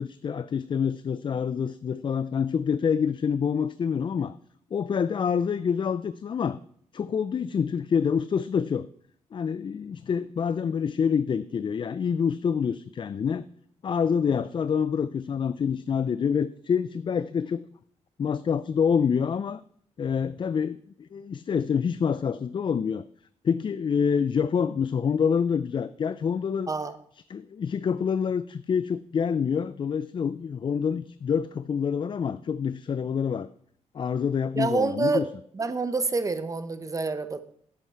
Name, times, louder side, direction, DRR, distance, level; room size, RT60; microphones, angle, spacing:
voice 1, 0.0-4.3 4.7-6.6 6.9-8.9 9.3-13.4 13.8-17.6 18.2-19.6 20.0-23.1 23.4-26.7 27.3-33.5 33.9-35.2, left 7 dB, 40° left, 14 dB, 0.4 m, -27 dB
voice 2, 34.6-35.3 35.5-37.4, right 3 dB, 25° right, 12 dB, 0.8 m, -27 dB
11.0 x 7.9 x 4.5 m, 0.62 s
cardioid pair, 100°, 13 cm